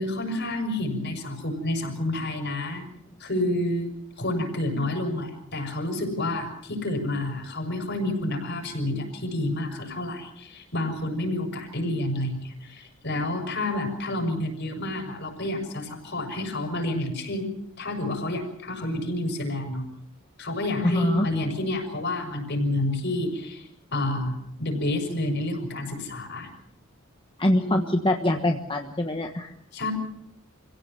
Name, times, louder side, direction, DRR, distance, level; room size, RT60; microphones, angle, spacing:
voice 1, 0.0-2.9 3.2-17.5 17.8-19.8 20.4-26.5 27.6-27.8 29.7-29.9, left 1 dB, 55° left, 4 dB, 6.3 m, -29 dB
voice 2, 20.9-21.3 27.4-29.5, left 1 dB, 25° left, 3 dB, 1.3 m, -24 dB
27.0 x 16.5 x 7.0 m, 0.75 s
head